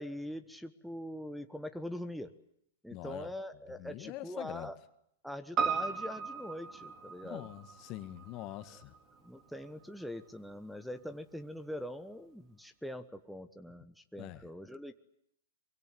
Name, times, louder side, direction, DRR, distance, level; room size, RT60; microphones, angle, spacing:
voice 1, 0.0-2.3 2.8-4.8 5.2-7.5 8.7-8.8 9.2-14.9, equal, ahead, 1.3 m, -43 dB
voice 2, 2.9-3.3 3.8-4.7 7.2-8.9 14.2-14.4, left 16 dB, 40° left, 1.8 m, -44 dB
Piano, 5.6-10.1 10.4-10.5, right 6 dB, 35° right, 4.8 m, -37 dB
24.0 x 23.5 x 9.6 m
hypercardioid pair, 115°, 0 cm